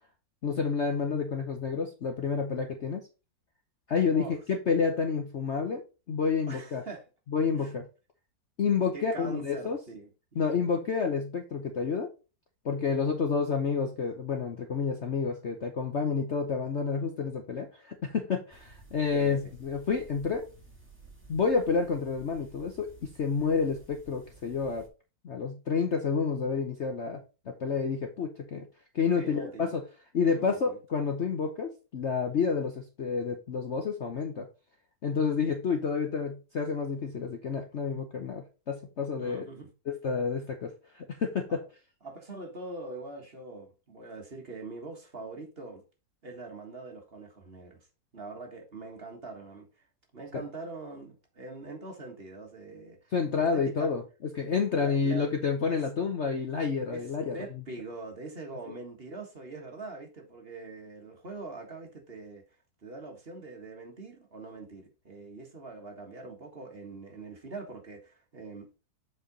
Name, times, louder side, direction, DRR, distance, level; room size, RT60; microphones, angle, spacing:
voice 1, 0.4-3.0 3.9-6.8 7.3-7.9 8.6-9.8 10.4-12.1 12.6-20.5 21.3-24.9 25.2-27.2 27.5-28.6 28.9-29.8 30.1-34.5 35.0-39.4 39.9-41.6 50.3-50.4 53.1-54.0 54.4-57.4, left 5 dB, 50° left, 0.9 m, -29 dB
voice 2, 6.5-7.0 7.6-7.7 8.9-10.6 19.1-19.5 29.1-29.7 30.2-30.8 39.2-39.7 41.5-41.6 42.0-45.8 46.2-47.9 48.1-49.7 50.1-53.9 54.8-55.3 55.7-55.8 56.9-57.1 57.3-62.5 62.8-68.7, right 3 dB, 35° right, 1.6 m, -43 dB
sound 1, 18.5-24.9, right 3 dB, 5° right, 1.8 m, -54 dB
7.6 x 4.8 x 4.0 m
omnidirectional pair, 1.9 m